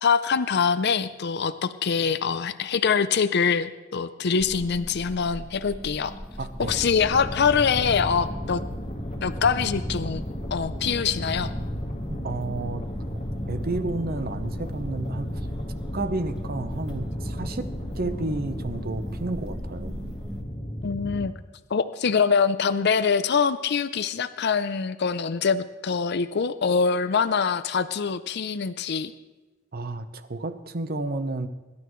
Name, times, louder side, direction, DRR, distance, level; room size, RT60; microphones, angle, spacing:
voice 1, 0.0-6.1 6.6-8.6 9.2-10.2 10.5-11.5 20.8-21.3 21.7-29.1, left 6 dB, 55° left, 12 dB, 0.5 m, -24 dB
sound 1, 4.4-20.4, equal, 5° right, 1.7 m, -40 dB
voice 2, 6.4-6.8 12.1-12.8 13.5-15.4 15.9-20.0 29.7-31.5, right 2 dB, 50° right, 10 dB, 0.9 m, -31 dB
sound 2, 6.6-21.3, equal, 35° left, 1.6 m, -34 dB
24.0 x 12.0 x 3.2 m, 1.2 s
head